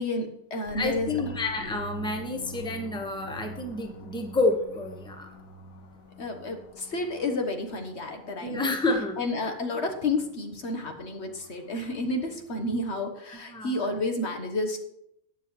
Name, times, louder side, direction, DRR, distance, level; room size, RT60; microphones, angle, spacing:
voice 1, 0.0-1.2 6.2-8.7 9.2-14.8, left 2 dB, 55° left, 5 dB, 1.4 m, -31 dB
sound 1, 0.7-12.7, left 1 dB, 85° left, 1.6 m, -45 dB
voice 2, 0.7-5.3 8.4-9.2 9.7-9.8 11.7-11.8 13.5-13.9, left 2 dB, 5° left, 4 dB, 1.1 m, -29 dB
19.5 x 7.4 x 3.1 m, 0.75 s
omnidirectional pair, 1.4 m